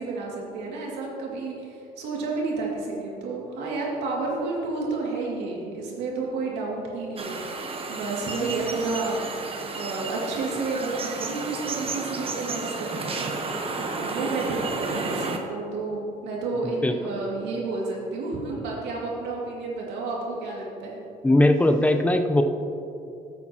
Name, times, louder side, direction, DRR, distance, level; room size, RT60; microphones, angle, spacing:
voice 1, 0.0-9.3 9.7-21.0, right 3 dB, 85° right, -3 dB, 2.4 m, -31 dB
sound 1, 7.2-15.4, right 3 dB, 35° right, 1.1 m, -32 dB
voice 2, 21.2-22.4, left 1 dB, 10° left, 6 dB, 0.7 m, -19 dB
15.0 x 8.3 x 3.0 m, 2.8 s
cardioid pair, 110°, 17 cm